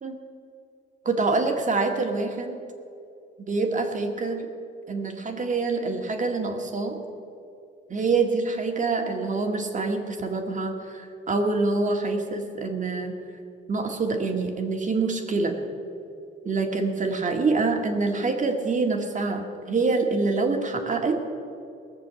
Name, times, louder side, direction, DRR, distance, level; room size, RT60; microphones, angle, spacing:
voice 1, 1.1-2.6 3.5-4.4 4.9-7.0 7.9-13.2 13.7-15.6 16.4-21.2, right 3 dB, 40° right, 3 dB, 2.0 m, -26 dB
19.5 x 6.8 x 8.4 m, 2.6 s
cardioid pair, 90°, 20 cm